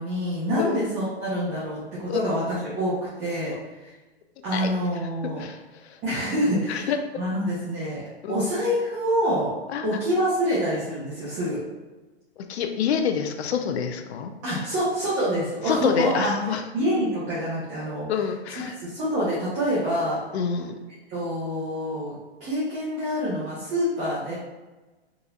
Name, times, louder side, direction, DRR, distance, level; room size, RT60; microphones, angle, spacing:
voice 1, 0.0-3.5 3.8-3.9 4.4-5.4 6.0-6.9 7.2-8.0 8.3-9.5 9.8-11.6 14.4-16.3 16.7-18.1 18.8-20.2 21.1-24.3, equal, 25° right, -9 dB, 0.9 m, -26 dB
voice 2, 5.4-6.0 6.7-7.0 8.2-8.4 9.7-9.9 12.5-14.3 14.6-14.7 15.7-16.6 18.1-18.7 20.3-20.8, left 7 dB, 80° left, 6 dB, 0.5 m, -27 dB
3.9 x 2.7 x 2.4 m, 1.2 s
hypercardioid pair, 150°, 32 cm